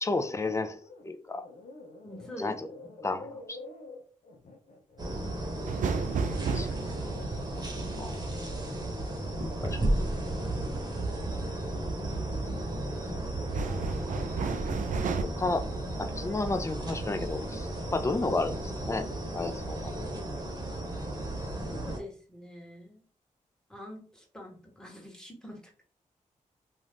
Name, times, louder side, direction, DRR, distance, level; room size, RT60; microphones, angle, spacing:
voice 1, 0.0-1.4 2.4-2.5 3.0-3.6 6.5-6.7 8.0-8.1 9.6-9.9 10.3-10.4 15.4-15.6 16.0-18.6 18.9-19.1 19.3-20.1, left 3 dB, 20° left, 8 dB, 0.5 m, -31 dB
sound 1, 0.8-1.1 1.3-6.7 7.1-8.8 9.2-9.6, left 2 dB, 70° left, 0.6 m, -49 dB
voice 2, 2.0-2.6 21.6-23.0 23.7-25.8, left 1 dB, 5° left, 0 dB, 1.1 m, -45 dB
sound 2, 5.0-22.0, right 1 dB, 30° right, 1.0 m, -34 dB
sound 3, 5.7-9.5 12.0-12.5 12.9-15.2, right 5 dB, 75° right, 0.4 m, -34 dB
2.6 x 2.4 x 3.4 m, 0.41 s
cardioid pair, 75°, 13 cm